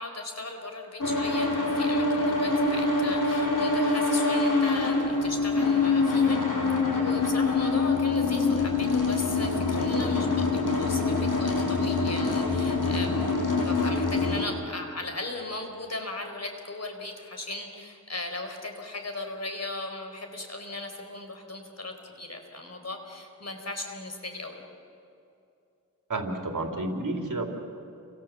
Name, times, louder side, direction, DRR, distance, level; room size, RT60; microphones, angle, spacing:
voice 1, 0.0-6.6 6.9-13.3 13.6-24.6, left 2 dB, 50° left, 4 dB, 4.5 m, -37 dB
sound 1, 1.0-14.4, left 3 dB, 65° left, 6.4 m, -25 dB
voice 2, 26.1-27.5, right 2 dB, 65° right, 2 dB, 3.7 m, -30 dB
30.0 x 26.0 x 7.6 m, 2.7 s
wide cardioid pair, 85°, 34 cm